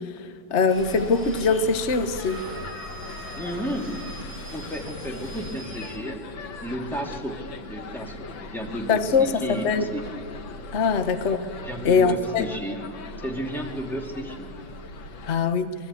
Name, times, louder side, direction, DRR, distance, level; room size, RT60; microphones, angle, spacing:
voice 1, 0.5-2.4 8.9-9.9 10.7-11.5 11.8-12.5 15.3-15.7, left 5 dB, 45° left, 9 dB, 1.2 m, -22 dB
sound 1, 0.7-15.4, left 3 dB, 85° left, 2.1 m, -39 dB
sound 2, 0.7-6.0, right 1 dB, 30° left, 3.1 m, -42 dB
voice 2, 3.3-4.0 4.5-6.2 6.6-7.4 7.7-10.1 11.6-12.8 13.2-14.5, equal, ahead, 0 dB, 2.8 m, -32 dB
26.0 x 22.5 x 8.4 m, 2.4 s
omnidirectional pair, 2.0 m